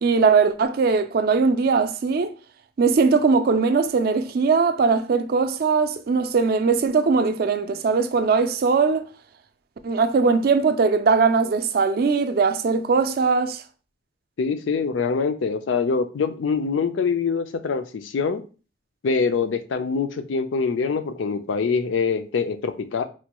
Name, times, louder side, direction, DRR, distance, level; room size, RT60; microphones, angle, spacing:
voice 1, 0.0-2.3 2.8-9.1 9.8-13.6, right 4 dB, 50° right, 0.3 m, -20 dB
voice 2, 14.4-18.4 19.0-23.0, left 5 dB, 85° left, 0.4 m, -24 dB
4.3 x 2.2 x 2.9 m
head